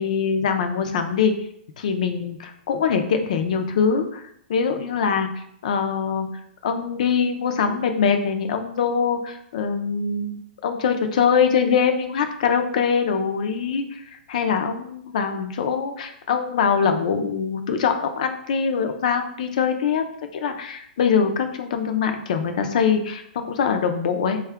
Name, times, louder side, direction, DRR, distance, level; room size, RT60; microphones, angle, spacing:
voice 1, 0.0-1.3 1.8-20.0 20.3-24.4, left 6 dB, 45° left, 6 dB, 0.4 m, -23 dB
3.6 x 2.3 x 3.4 m, 0.70 s
hypercardioid pair, 175°, 5 cm